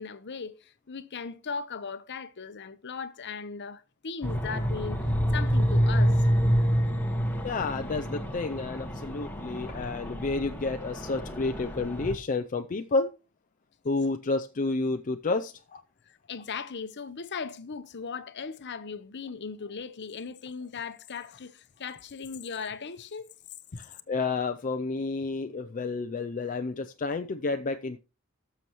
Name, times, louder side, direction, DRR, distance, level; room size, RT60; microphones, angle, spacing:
voice 1, 0.0-6.3 16.1-23.3 23.7-23.8, left 5 dB, 55° left, 0.8 m, -38 dB
sound 1, 4.2-12.1, equal, 10° left, 1.4 m, -27 dB
voice 2, 7.4-13.1 13.8-15.8 24.1-28.0, left 3 dB, 40° left, 0.5 m, -30 dB
17.5 x 7.0 x 3.0 m
head